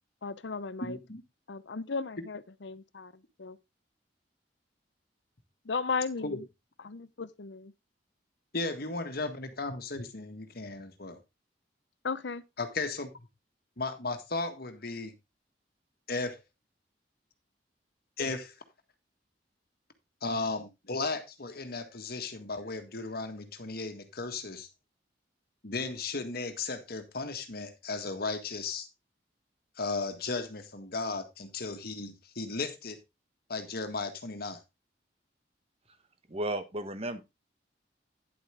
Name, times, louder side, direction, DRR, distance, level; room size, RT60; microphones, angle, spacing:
voice 1, 0.2-1.0 1.5-3.1 3.4-3.6 5.7-6.4 6.8-7.7 12.0-12.4, left 4 dB, 75° left, 0.7 m, -35 dB
voice 2, 0.8-1.2 6.2-6.4 8.5-11.2 12.6-13.1 13.8-15.1 16.1-16.4 18.2-18.5 20.2-24.7 25.6-28.9 29.8-33.0 33.5-34.6, left 3 dB, 60° left, 1.7 m, -35 dB
voice 3, 36.3-37.2, right 1 dB, 35° right, 1.3 m, -33 dB
10.5 x 8.1 x 3.4 m
head